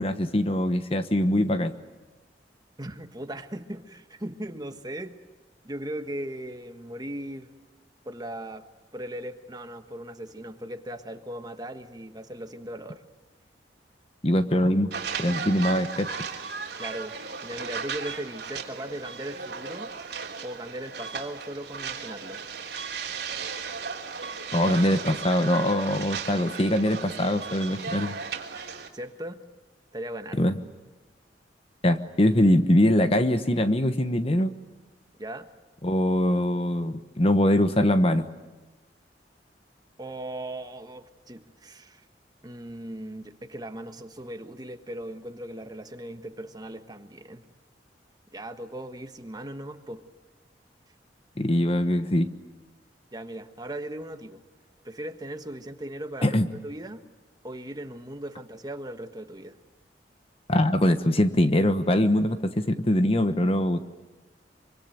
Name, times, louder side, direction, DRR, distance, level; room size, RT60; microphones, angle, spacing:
voice 1, 0.0-1.7 14.2-14.9 15.2-16.1 24.5-28.1 30.4-30.6 31.8-34.5 35.8-38.3 51.4-52.3 56.2-56.5 60.5-63.9, left 1 dB, 35° left, 10 dB, 1.1 m, -23 dB
voice 2, 2.8-5.2 5.6-7.5 8.0-8.6 8.9-13.0 16.8-17.1 17.4-19.9 20.4-22.4 28.9-29.4 29.9-30.5 35.2-35.5 40.0-42.0 42.4-47.4 48.3-50.0 53.1-54.4 54.8-56.4 56.6-57.0 57.4-59.6, right 1 dB, 20° right, 8 dB, 1.3 m, -38 dB
sound 1, 14.9-28.9, right 5 dB, 65° right, 3.3 m, -36 dB
24.5 x 24.5 x 9.1 m, 1.2 s
head